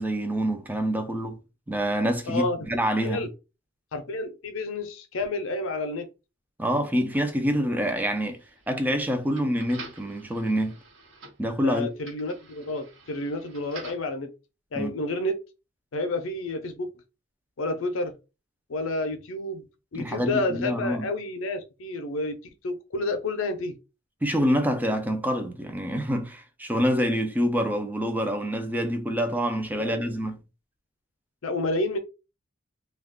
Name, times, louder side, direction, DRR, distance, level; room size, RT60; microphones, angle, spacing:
voice 1, 0.0-1.4 1.7-3.3 6.6-8.4 8.7-10.7 11.4-11.9 14.7-14.9 19.9-21.1 24.2-30.4, equal, 10° right, 0.4 m, -26 dB
voice 2, 2.3-2.6 3.0-3.3 3.9-6.1 11.6-14.3 14.7-15.4 15.9-16.9 17.6-18.2 18.7-19.6 19.9-22.4 22.6-23.8 29.8-30.1 31.4-32.0, left 2 dB, 85° left, 0.6 m, -30 dB
sound 1, 8.3-14.1, right 3 dB, 85° right, 1.1 m, -48 dB
2.3 x 2.3 x 3.5 m
head